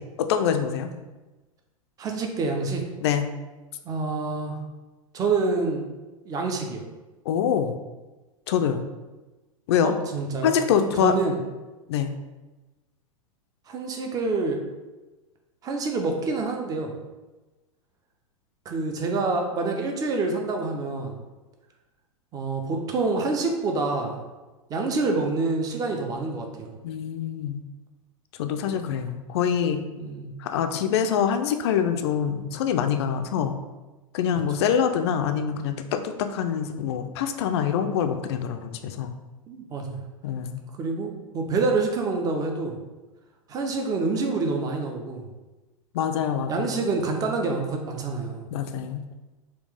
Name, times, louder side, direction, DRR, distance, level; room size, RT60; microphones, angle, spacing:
voice 1, 0.2-0.9 3.0-3.3 7.3-7.7 8.5-8.8 9.7-9.9 10.4-11.1 11.9-12.1 26.8-27.6 28.4-29.8 30.4-33.6 34.1-39.1 40.2-40.6 45.9-46.5 48.5-49.0, left 8 dB, 50° left, 7 dB, 0.4 m, -25 dB
voice 2, 2.0-2.8 3.8-4.6 5.1-5.8 6.3-6.8 9.8-10.5 11.0-11.4 13.7-14.6 15.6-16.9 18.7-21.2 22.3-24.2 24.7-26.7 28.7-28.9 30.0-30.3 39.5-40.0 40.8-42.8 43.5-45.2 46.5-48.4, right 3 dB, 20° right, 3 dB, 0.5 m, -27 dB
4.3 x 2.3 x 3.3 m, 1.2 s
figure-of-eight pair, 95°, 18 cm